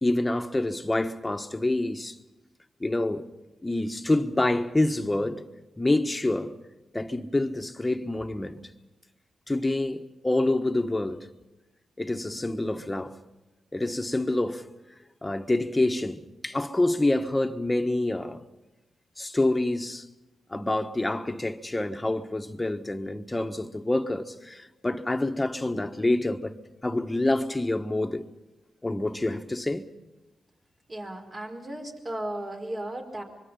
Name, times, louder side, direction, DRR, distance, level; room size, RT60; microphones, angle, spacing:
voice 1, 0.0-2.1 2.8-3.3 3.6-5.5 5.8-6.5 6.9-8.6 9.5-11.3 12.0-13.2 13.7-14.6 15.2-18.4 19.2-20.0 20.5-26.6 26.8-28.2 28.8-29.9, left 2 dB, 20° left, 1.5 m, -27 dB
voice 2, 30.9-33.2, right 1 dB, 35° right, 4.7 m, -35 dB
25.0 x 23.0 x 5.6 m
supercardioid pair, 45°, 0 cm